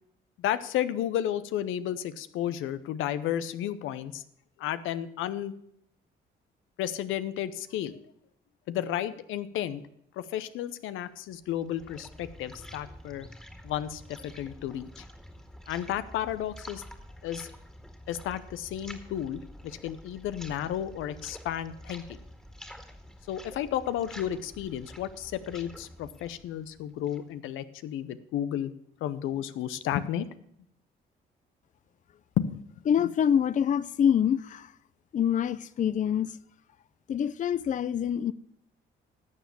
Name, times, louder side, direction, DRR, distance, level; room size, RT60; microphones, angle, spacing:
voice 1, 0.4-4.2 4.6-5.5 6.8-8.0 8.7-9.8 10.2-13.3 13.6-15.0 15.7-16.8 17.2-17.5 18.1-22.2 23.3-28.7 29.0-30.3 32.4-32.6, left 11 dB, 90° left, 0.7 m, -32 dB
sound 1, 11.3-27.3, equal, 5° left, 1.9 m, -48 dB
voice 2, 32.9-34.7 35.1-36.4 37.1-38.3, left 8 dB, 40° left, 0.5 m, -25 dB
12.0 x 7.3 x 6.8 m
cardioid pair, 90°, 20 cm